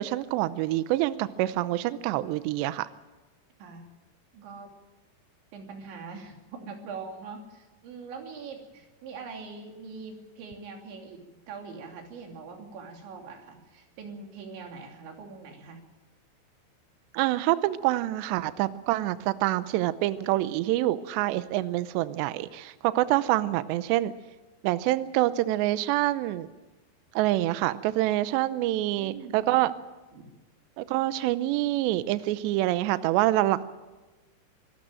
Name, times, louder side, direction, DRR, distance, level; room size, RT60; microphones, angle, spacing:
voice 1, 0.0-2.9 17.1-24.1 24.6-26.5 27.2-29.7 30.8-33.6, right 15 dB, 85° right, 14 dB, 2.4 m, -26 dB
voice 2, 4.3-4.7 5.5-15.8 28.8-29.6 30.1-30.3, right 4 dB, 60° right, 2 dB, 5.0 m, -43 dB
25.5 x 12.5 x 9.0 m, 1.2 s
omnidirectional pair, 6.0 m